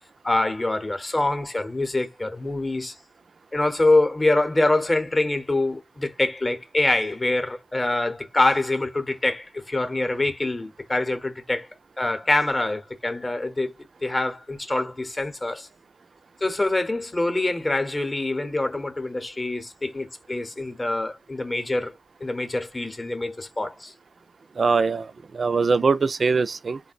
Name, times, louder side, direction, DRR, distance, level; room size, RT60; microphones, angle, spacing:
voice 1, 0.2-2.9 3.5-11.7 12.0-13.7 14.0-15.7 16.4-21.9 22.2-23.9, left 2 dB, 30° left, 0.7 m, -25 dB
voice 2, 24.6-26.8, right 4 dB, 55° right, 0.3 m, -22 dB
3.6 x 2.1 x 2.4 m
cardioid pair, 50°, 0 cm